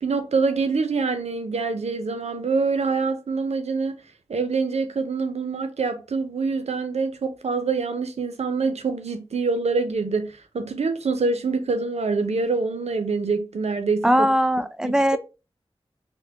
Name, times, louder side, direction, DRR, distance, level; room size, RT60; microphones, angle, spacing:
voice 1, 0.0-4.0 4.3-14.3 14.8-15.0, right 4 dB, 90° right, 0.5 m, -25 dB
voice 2, 14.0-15.2, equal, 5° right, 0.3 m, -20 dB
3.6 x 2.1 x 3.3 m
wide cardioid pair, 45°, 11 cm